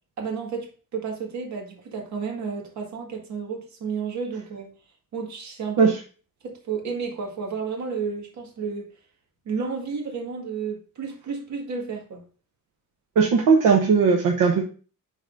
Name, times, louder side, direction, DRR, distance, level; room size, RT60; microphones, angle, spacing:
voice 1, 0.2-4.7 5.1-5.9 6.4-8.9 9.5-12.2, right 5 dB, 60° right, 1.9 m, -32 dB
voice 2, 13.2-14.6, right 5 dB, 75° right, 1.1 m, -18 dB
10.0 x 4.0 x 2.6 m
cardioid pair, 165°, 32 cm